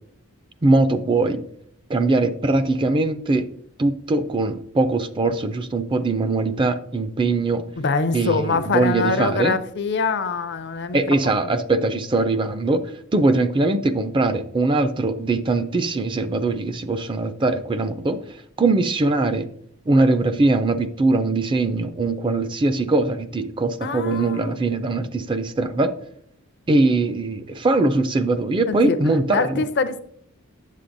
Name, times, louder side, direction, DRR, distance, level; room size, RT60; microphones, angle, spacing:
voice 1, 0.6-1.4 1.9-3.4 3.8-7.6 8.1-9.6 10.9-12.8 13.1-18.2 18.6-19.5 19.9-25.9 26.7-29.6, right 2 dB, 25° right, 0.4 m, -21 dB
voice 2, 7.8-11.3 23.8-24.5 28.7-29.0 29.3-30.0, left 4 dB, 55° left, 0.5 m, -24 dB
8.3 x 7.5 x 2.6 m
head